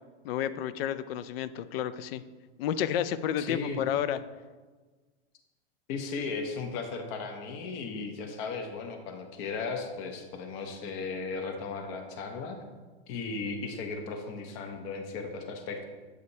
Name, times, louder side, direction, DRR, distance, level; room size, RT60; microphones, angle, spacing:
voice 1, 0.2-2.2 2.6-4.2, left 10 dB, 65° left, 14 dB, 0.5 m, -31 dB
voice 2, 3.4-3.8 5.9-12.6 13.1-15.9, left 4 dB, 45° left, 5 dB, 0.9 m, -36 dB
8.0 x 4.9 x 2.8 m, 1.3 s
supercardioid pair, 135°, 33 cm